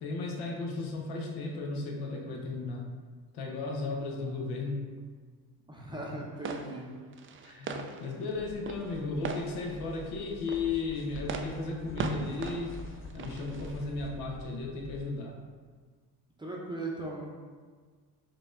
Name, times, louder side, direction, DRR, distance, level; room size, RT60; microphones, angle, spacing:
voice 1, 0.0-2.9 3.3-4.9 7.4-12.8 13.1-15.4, left 3 dB, 70° left, 0 dB, 0.9 m, -35 dB
voice 2, 4.0-4.5 5.7-6.9 16.4-17.3, right 2 dB, 10° right, -3 dB, 0.7 m, -39 dB
sound 1, 6.3-14.0, right 4 dB, 30° right, 0.4 m, -40 dB
sound 2, 8.3-15.1, left 2 dB, 30° left, 0.5 m, -47 dB
4.6 x 2.5 x 3.7 m, 1.5 s
supercardioid pair, 75°, 40 cm